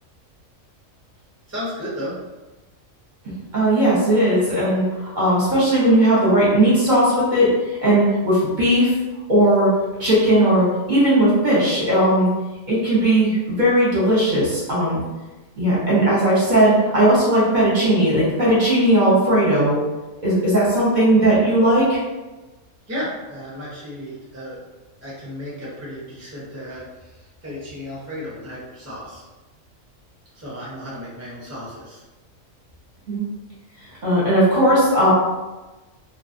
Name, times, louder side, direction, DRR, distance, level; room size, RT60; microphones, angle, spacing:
voice 1, 1.5-2.2 22.9-24.6 25.0-29.2 30.3-32.0, equal, 20° right, -8 dB, 0.5 m, -34 dB
voice 2, 3.5-8.9 9.3-9.7 10.0-12.3 12.7-15.0 15.6-19.8 20.2-22.0 33.1-33.2 34.0-35.1, right 1 dB, 40° right, -8 dB, 0.8 m, -17 dB
2.4 x 2.3 x 2.5 m, 1.1 s
omnidirectional pair, 1.4 m